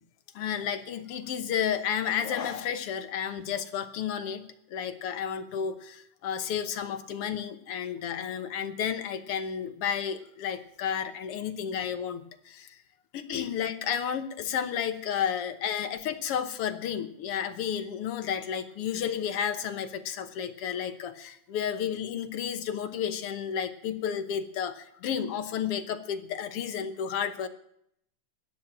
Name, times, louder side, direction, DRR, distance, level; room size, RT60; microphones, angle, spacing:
voice 1, 0.3-12.7 13.1-27.5, left 8 dB, 65° left, 9 dB, 1.6 m, -32 dB
14.5 x 10.5 x 8.9 m, 0.71 s
omnidirectional pair, 3.6 m